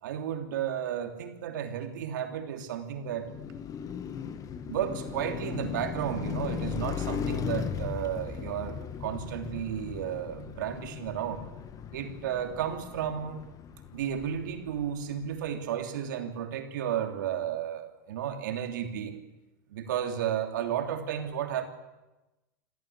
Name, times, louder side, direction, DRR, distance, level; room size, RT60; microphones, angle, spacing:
voice 1, 0.0-3.3 4.7-11.4 11.9-13.4 13.9-19.2 19.7-21.6, right 9 dB, 75° right, 4 dB, 3.1 m, -33 dB
Car passing by, 3.0-15.3, left 7 dB, 35° left, 1.7 m, -37 dB
27.0 x 14.0 x 8.6 m, 1.1 s
hypercardioid pair, 95°, 10 cm